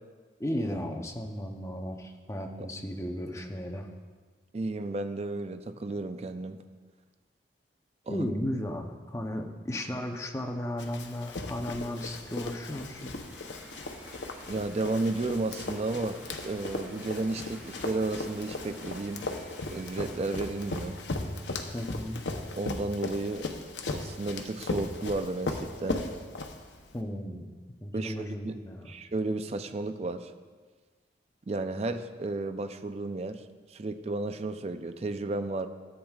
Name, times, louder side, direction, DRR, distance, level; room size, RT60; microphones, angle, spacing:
voice 1, 0.4-3.9 8.1-13.2 21.7-22.2 26.9-27.5 27.8-28.9, equal, 15° left, 3 dB, 0.7 m, -35 dB
voice 2, 4.5-6.6 8.1-8.2 14.5-19.3 19.7-21.0 22.6-23.5 23.9-26.0 27.9-28.1 28.4-30.3 31.5-33.4 33.7-35.7, right 2 dB, 35° right, 9 dB, 0.4 m, -33 dB
Run, 10.8-26.9, left 2 dB, 90° left, 0.8 m, -37 dB
sound 1, 12.4-23.4, equal, 10° right, 1.6 m, -51 dB
13.5 x 8.7 x 2.4 m, 1.5 s
head